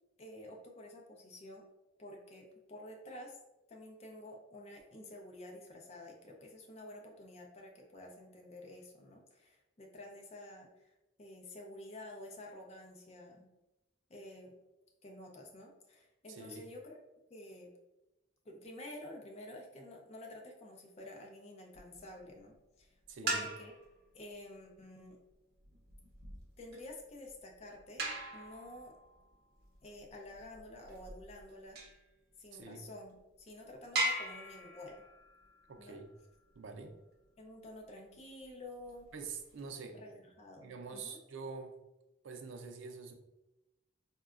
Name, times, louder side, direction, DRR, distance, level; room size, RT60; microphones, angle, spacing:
voice 1, 0.2-1.6 2.0-3.4 3.7-10.9 11.2-13.5 14.1-14.5 15.0-17.0 17.3-17.7 18.5-22.9 23.2-23.7 24.1-25.2 26.6-28.0 28.3-28.9 29.8-31.8 32.4-35.0 35.8-36.0 37.4-39.1 39.9-41.2, left 1 dB, 35° left, 1 dB, 0.5 m, -50 dB
voice 2, 16.3-16.6 23.1-23.5 32.5-32.8 35.7-36.1 36.5-37.0 39.1-40.0 40.6-41.8 42.2-43.1, right 4 dB, 85° right, 5 dB, 0.4 m, -46 dB
sound 1, 21.7-22.2 23.1-24.0 25.6-32.1 32.7-32.8 33.3-33.4 34.0-36.6 38.7-39.7, right 1 dB, 55° right, 0.7 m, -41 dB
3.8 x 2.2 x 2.4 m, 0.95 s
head